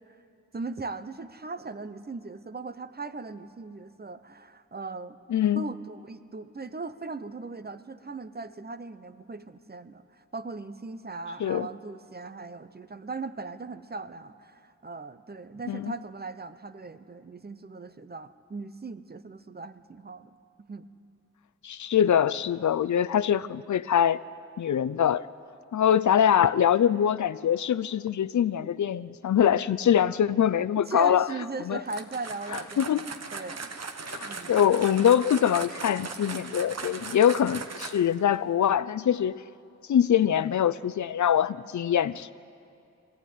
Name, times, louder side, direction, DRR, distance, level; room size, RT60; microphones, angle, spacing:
voice 1, 0.5-5.2 5.5-20.3 20.6-20.9 30.5-33.7 34.2-34.6 37.0-37.2 40.1-40.4, right 3 dB, 35° right, 12 dB, 0.8 m, -39 dB
voice 2, 5.3-5.6 11.4-11.7 15.7-15.9 21.6-24.2 24.6-25.3 25.7-31.3 31.7-31.8 32.8-33.0 34.1-39.4 39.9-42.3, left 9 dB, 80° left, 15 dB, 0.5 m, -23 dB
sound 1, 31.9-38.2, right 4 dB, 60° right, 1.2 m, -39 dB
21.0 x 15.0 x 9.4 m, 2.5 s
wide cardioid pair, 80°, 29 cm